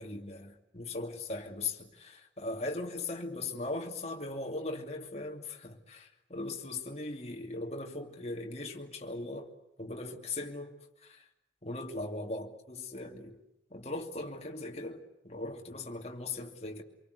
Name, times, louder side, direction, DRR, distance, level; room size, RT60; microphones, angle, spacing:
voice 1, 0.0-9.5 9.8-11.3 11.6-13.4 13.7-16.8, left 2 dB, 35° left, 2.8 m, -39 dB
26.5 x 24.0 x 8.2 m
head